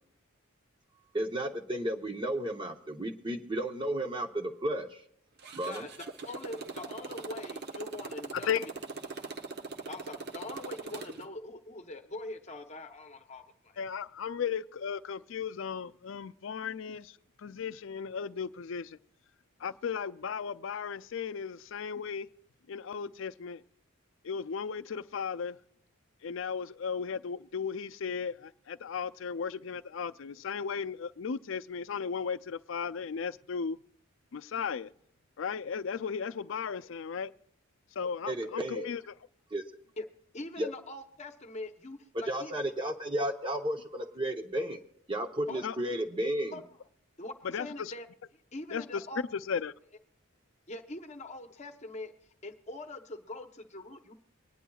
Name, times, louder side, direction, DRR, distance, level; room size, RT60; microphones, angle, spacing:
voice 1, 1.1-5.0 5.6-5.8 38.3-38.9 39.5-39.6 40.6-40.7 42.3-44.8 45.1-46.5, right 1 dB, 25° right, 0.8 m, -33 dB
Motorcycle, 5.4-11.3, right 3 dB, 50° right, 0.8 m, -41 dB
voice 2, 5.6-8.6 9.9-13.8 40.0-40.1 40.3-42.5 45.5-45.6 46.5-46.6 47.2-48.1 48.5-49.2 50.7-52.1 52.4-54.1, left 2 dB, 35° left, 0.9 m, -43 dB
voice 3, 8.3-8.7 13.8-17.2 17.4-19.0 19.6-22.3 22.7-23.6 24.2-25.6 26.2-33.8 34.3-34.9 35.4-37.3 38.0-39.1 45.6-45.8 47.4-47.9 48.7-49.0 49.3-49.7, left 6 dB, 65° left, 0.4 m, -35 dB
24.5 x 9.9 x 2.3 m
head